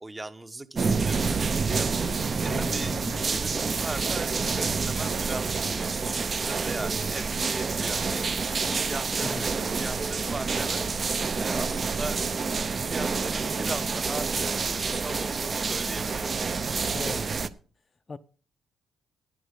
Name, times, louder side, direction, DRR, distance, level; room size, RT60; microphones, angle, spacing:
voice 1, 0.0-1.9 2.4-8.3 8.7-10.9 11.4-12.2 12.7-16.8, right 2 dB, 20° right, 1.0 m, -39 dB
sound 1, 0.8-17.5, right 4 dB, 40° right, 0.8 m, -28 dB
voice 2, 2.5-3.2 9.2-9.5 16.9-17.2 18.1-18.2, left 4 dB, 30° left, 0.5 m, -37 dB
sound 2, 9.1-14.9, right 5 dB, 65° right, 3.7 m, -49 dB
11.5 x 9.9 x 5.2 m
cardioid pair, 90°, 0 cm